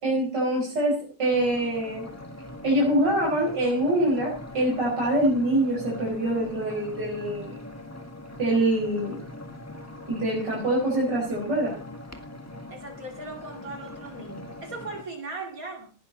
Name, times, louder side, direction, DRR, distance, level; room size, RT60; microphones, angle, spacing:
voice 1, 0.0-2.1 2.6-7.6 8.4-9.2 10.1-11.8, right 1 dB, 85° right, -4 dB, 5.9 m, -24 dB
sound 1, 1.3-15.0, left 1 dB, 10° left, 1.8 m, -42 dB
voice 2, 12.7-15.9, right 3 dB, 55° right, 2 dB, 3.0 m, -38 dB
19.0 x 12.0 x 4.1 m, 0.38 s
omnidirectional pair, 1.8 m